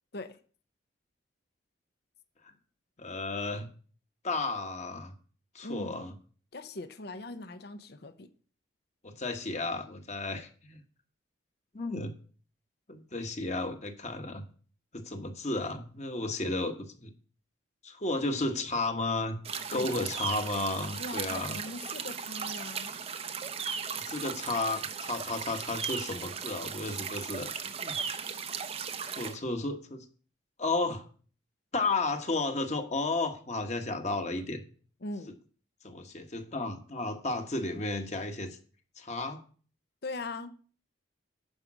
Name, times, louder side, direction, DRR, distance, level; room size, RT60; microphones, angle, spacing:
voice 1, 3.0-3.7 4.2-5.1 5.5-6.1 9.0-10.8 11.7-12.1 12.9-14.4 14.9-17.1 17.8-19.4 19.7-21.6 24.0-28.0 29.2-30.0 30.6-31.0 31.7-34.6 35.8-38.6 39.0-39.4, left 2 dB, 35° left, 1.3 m, -33 dB
voice 2, 5.6-6.1 6.5-8.3 19.7-20.1 20.9-22.9 35.0-35.4 40.0-40.5, left 2 dB, 55° left, 0.7 m, -41 dB
sound 1, 19.4-29.4, right 6 dB, 30° right, 0.6 m, -37 dB
10.5 x 5.2 x 6.1 m
head